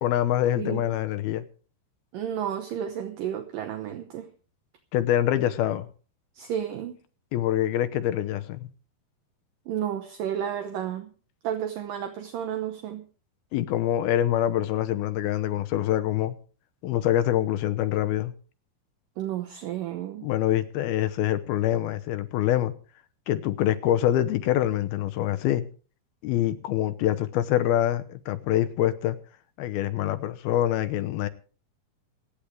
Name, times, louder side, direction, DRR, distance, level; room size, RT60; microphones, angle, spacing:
voice 1, 0.0-1.4 4.9-5.9 7.3-8.7 13.5-16.4 16.8-18.3 20.2-22.7 23.3-25.7 26.2-29.2 29.6-31.3, left 12 dB, 80° left, 11 dB, 2.8 m, -25 dB
voice 2, 2.1-4.3 6.4-7.0 9.7-11.1 11.4-13.1 19.2-20.3, right 9 dB, 70° right, 7 dB, 2.4 m, -32 dB
27.0 x 10.0 x 3.3 m, 0.39 s
omnidirectional pair, 4.6 m